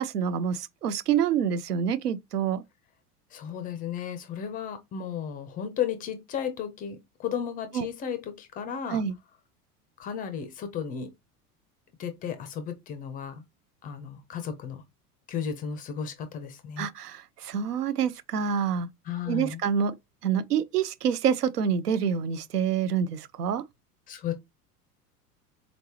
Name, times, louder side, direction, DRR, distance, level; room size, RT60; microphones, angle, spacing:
voice 1, 0.0-2.6 7.7-7.9 8.9-9.1 16.8-18.9 19.3-19.9 20.2-23.6, right 7 dB, 75° right, 0.6 m, -27 dB
voice 2, 3.3-9.0 10.0-11.1 12.0-13.4 13.8-14.8 15.3-16.9 19.1-19.6 24.1-24.3, left 8 dB, 20° left, 0.4 m, -34 dB
3.9 x 3.3 x 2.8 m
figure-of-eight pair, 80°, 47 cm